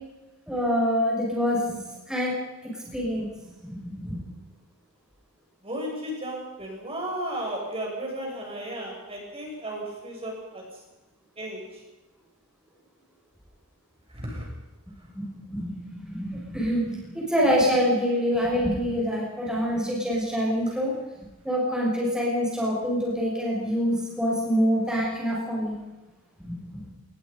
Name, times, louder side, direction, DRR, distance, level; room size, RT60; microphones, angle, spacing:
voice 1, 0.5-1.8 2.1-2.3 2.6-3.3 3.6-4.2 15.1-20.9 21.4-25.8 26.4-26.8, equal, 5° right, -4 dB, 6.4 m, -26 dB
voice 2, 5.6-10.7 11.4-11.8 14.1-14.5, right 1 dB, 25° right, -1 dB, 7.1 m, -34 dB
27.0 x 20.0 x 5.5 m, 1.1 s
head